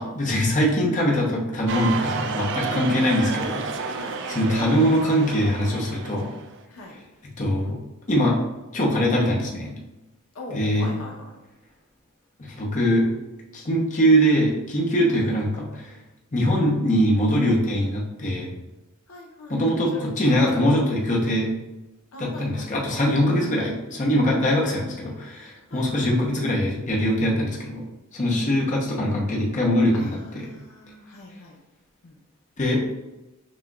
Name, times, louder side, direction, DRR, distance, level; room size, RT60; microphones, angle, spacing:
voice 1, 0.0-6.3 7.2-7.8 8.1-8.4 8.7-9.7 10.5-10.9 12.4-13.1 13.5-16.0 16.3-18.5 19.5-21.5 22.2-27.9 28.1-30.5 32.6-32.9, equal, 35° left, -3 dB, 0.8 m, -22 dB
sound 1, 1.7-6.5, right 4 dB, 60° right, 0.4 m, -31 dB
voice 2, 10.3-11.4 15.2-15.3 19.1-19.6 19.9-20.1 20.5-20.7 22.1-22.7 24.6-24.7 25.7-26.1 28.3-28.5 29.9-31.6 32.0-32.2, left 1 dB, 80° left, 0 dB, 0.8 m, -40 dB
6.1 x 2.9 x 2.3 m, 1.0 s
head